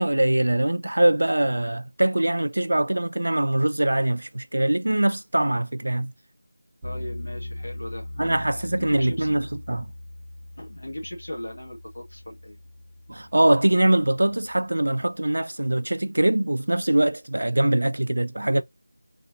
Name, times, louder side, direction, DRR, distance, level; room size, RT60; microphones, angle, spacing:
voice 1, 0.0-6.1 8.2-9.9 13.1-18.6, right 1 dB, 70° right, 0.4 m, -22 dB
voice 2, 6.8-8.4 8.8-9.3 10.5-12.6, left 1 dB, 55° left, 2.2 m, -38 dB
sound 1, 6.8-15.0, left 1 dB, 10° right, 0.7 m, -40 dB
4.2 x 2.8 x 2.7 m
figure-of-eight pair, 180°, 0 cm